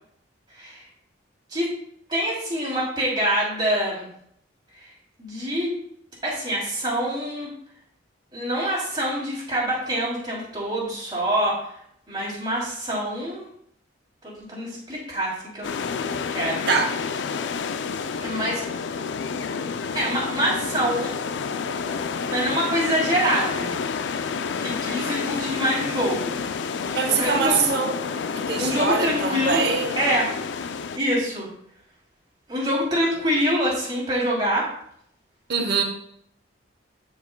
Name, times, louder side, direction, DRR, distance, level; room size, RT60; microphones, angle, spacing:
voice 1, 2.1-4.0 4.7-4.9 5.2-5.7 6.2-7.5 8.3-11.6 12.1-13.5 14.2-15.7 16.3-16.6 18.2-18.6 19.9-21.1 21.9-22.0 22.3-23.7 24.2-26.4 27.2-27.6 28.6-29.7 30.0-30.3 30.9-31.5 32.5-34.7, equal, 20° right, -5 dB, 2.9 m, -25 dB
sound 1, 15.6-31.0, left 5 dB, 65° left, 0.4 m, -29 dB
voice 2, 26.9-28.0 28.4-30.0 35.5-35.8, right 5 dB, 55° right, 4 dB, 0.8 m, -23 dB
12.0 x 4.7 x 2.2 m, 0.70 s
head